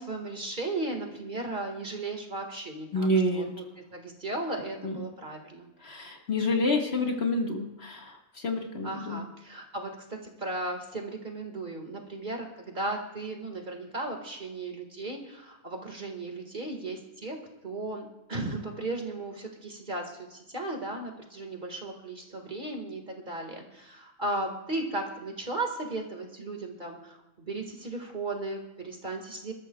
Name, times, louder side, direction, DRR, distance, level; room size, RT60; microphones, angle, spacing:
voice 1, 0.0-3.4 3.8-5.7 8.8-17.4 17.6-29.5, right 2 dB, 35° right, 2 dB, 1.9 m, -36 dB
voice 2, 2.9-3.5 4.8-5.0 5.8-9.2, left 1 dB, 50° left, 1 dB, 1.9 m, -28 dB
26.5 x 13.5 x 2.3 m, 0.96 s
omnidirectional pair, 1.4 m